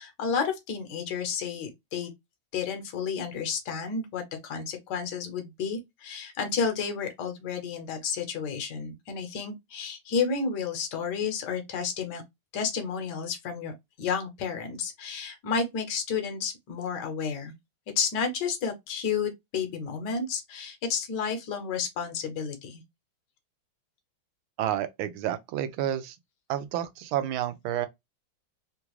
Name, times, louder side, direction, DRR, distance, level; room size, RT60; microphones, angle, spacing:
voice 1, 0.0-2.1 2.5-12.2 12.5-13.7 14.0-17.5 18.0-22.8, left 6 dB, 65° left, 1.4 m, -31 dB
voice 2, 24.6-26.2 26.5-27.9, right 11 dB, 85° right, 1.4 m, -30 dB
3.7 x 2.4 x 2.9 m
omnidirectional pair, 2.2 m